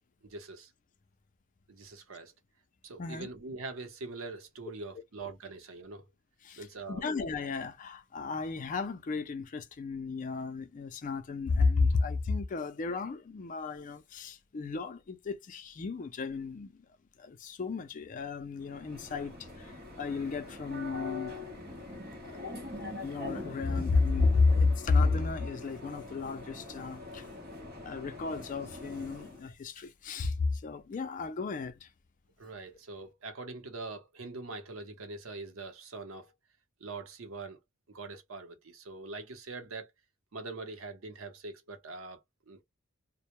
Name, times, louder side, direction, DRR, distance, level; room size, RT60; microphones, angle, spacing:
voice 1, 0.2-0.7 1.7-2.3 2.8-6.1 6.6-7.0 32.4-36.3 36.8-37.6 37.9-39.9 40.3-42.2 42.5-42.6, right 3 dB, 90° right, 0.7 m, -43 dB
voice 2, 6.9-16.9 17.2-21.3 21.7-21.8 23.0-27.3 27.8-31.9, left 4 dB, 40° left, 0.4 m, -32 dB
sound 1, 18.6-29.4, left 2 dB, 50° right, 1.0 m, -43 dB
2.1 x 2.0 x 2.9 m
head